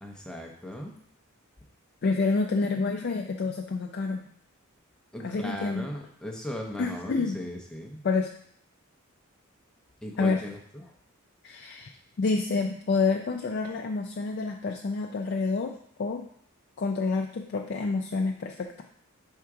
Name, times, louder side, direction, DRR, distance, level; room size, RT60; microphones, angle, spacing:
voice 1, 0.0-1.0 5.1-8.0 10.0-10.9, left 1 dB, 5° left, 0 dB, 0.6 m, -38 dB
voice 2, 2.0-4.2 5.2-5.8 6.8-7.4 8.0-8.3 10.2-10.4 11.4-16.2 16.8-18.8, left 4 dB, 50° left, 3 dB, 0.4 m, -28 dB
5.8 x 3.6 x 4.7 m, 0.65 s
head